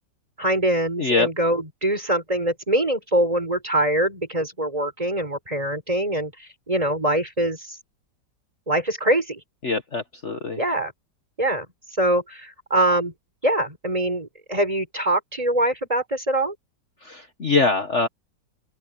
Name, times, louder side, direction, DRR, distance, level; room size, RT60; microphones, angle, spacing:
voice 1, 0.4-7.8 8.7-9.4 10.6-10.9 11.4-11.7 12.0-13.1 13.4-16.5, right 1 dB, 20° right, 4.9 m, -23 dB
voice 2, 1.0-1.3 9.6-10.6 17.0-18.1, left 4 dB, 40° left, 1.6 m, -23 dB
open air
omnidirectional pair, 1.9 m